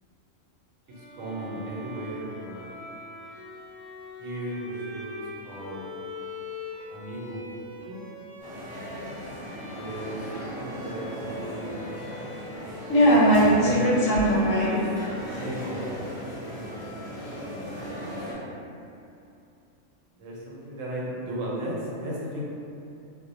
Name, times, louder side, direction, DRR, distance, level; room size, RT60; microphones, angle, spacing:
Bowed string instrument, 0.9-18.7, left 1 dB, 10° right, 0.6 m, -43 dB
voice 1, 0.9-2.7 4.2-5.8 6.9-8.0 9.5-11.9 13.6-13.8 15.3-16.1 16.5-17.0 17.5-17.6 17.9-18.5 20.1-22.4, right 1 dB, 90° right, -5 dB, 1.0 m, -36 dB
sound 1, 8.4-18.3, equal, 35° left, 0.6 m, -37 dB
voice 2, 12.9-14.9, equal, 85° left, -8 dB, 1.1 m, -20 dB
2.4 x 2.0 x 2.6 m, 2.7 s
omnidirectional pair, 1.3 m